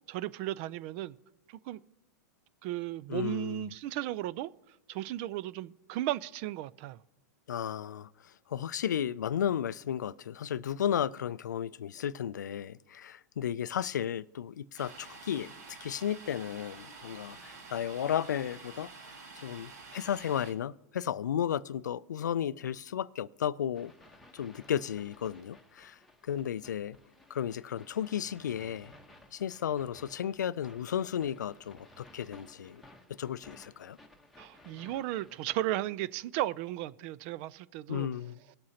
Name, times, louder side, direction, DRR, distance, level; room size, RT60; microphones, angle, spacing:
voice 1, 0.1-1.2 1.5-1.8 2.6-4.5 4.9-7.0 34.4-38.1, right 14 dB, 45° right, 0.4 m, -35 dB
voice 2, 3.1-3.7 7.5-23.9 24.3-27.0 27.3-28.9 29.3-32.8 33.2-34.0 37.9-38.4, left 9 dB, 90° left, 0.3 m, -34 dB
Domestic sounds home sounds, 14.8-20.5, right 4 dB, 65° right, 1.6 m, -49 dB
sound 1, 23.7-35.6, left 1 dB, ahead, 1.1 m, -57 dB
18.5 x 7.7 x 2.9 m
hypercardioid pair, 130°, 9 cm